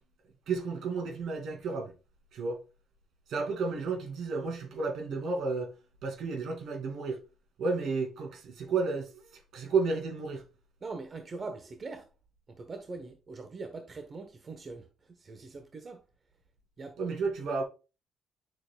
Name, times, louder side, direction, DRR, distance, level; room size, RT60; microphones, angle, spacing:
voice 1, 0.5-1.9 2.3-2.6 3.3-5.7 6.0-7.2 7.6-9.2 9.5-10.4 17.0-17.6, right 4 dB, 75° right, 2.6 m, -32 dB
voice 2, 10.8-12.1 12.5-14.9 15.2-16.0 16.8-17.0, right 3 dB, 40° right, 1.1 m, -42 dB
9.1 x 6.3 x 2.3 m
cardioid pair, 90°, 0 cm